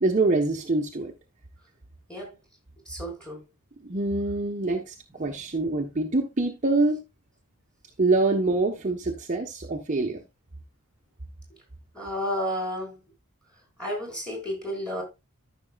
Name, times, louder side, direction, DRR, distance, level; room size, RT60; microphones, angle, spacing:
voice 1, 0.0-1.1 3.8-7.0 8.0-10.2, right 2 dB, 35° right, 1.1 m, -25 dB
voice 2, 2.9-3.4 5.2-5.3 11.9-13.0 13.8-15.0, equal, 5° left, 4.7 m, -32 dB
14.0 x 6.2 x 2.4 m
head